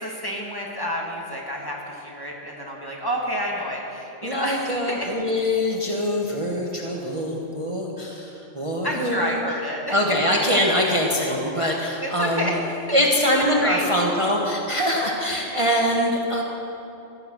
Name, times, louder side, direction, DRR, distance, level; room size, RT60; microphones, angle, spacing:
voice 1, 0.0-5.1 8.8-9.9 12.0-13.0 13.3-13.9, equal, 20° left, -2 dB, 1.8 m, -29 dB
voice 2, 4.2-9.4 9.9-12.5 12.9-16.4, equal, 25° right, -2 dB, 1.3 m, -23 dB
15.5 x 11.5 x 6.1 m, 2.9 s
omnidirectional pair, 1.3 m